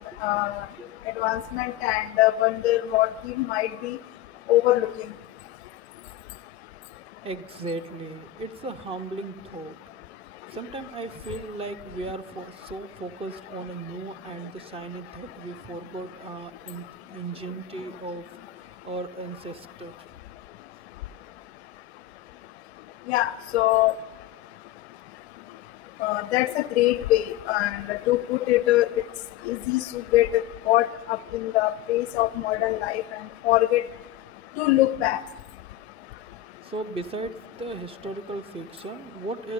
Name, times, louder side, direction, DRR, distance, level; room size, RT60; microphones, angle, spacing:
voice 1, 1.2-3.1 3.4-4.0 4.5-4.9 23.1-23.9 26.0-27.2 27.5-28.9 29.5-29.8 30.1-30.4 30.7-30.9 31.4-33.0 33.5-33.8 34.6-35.2, left 16 dB, 50° left, 0.4 m, -22 dB
voice 2, 7.2-9.8 10.5-18.3 18.6-19.9 36.6-39.5, right 2 dB, 15° right, 0.5 m, -36 dB
26.0 x 10.5 x 5.1 m
figure-of-eight pair, 75°, 42 cm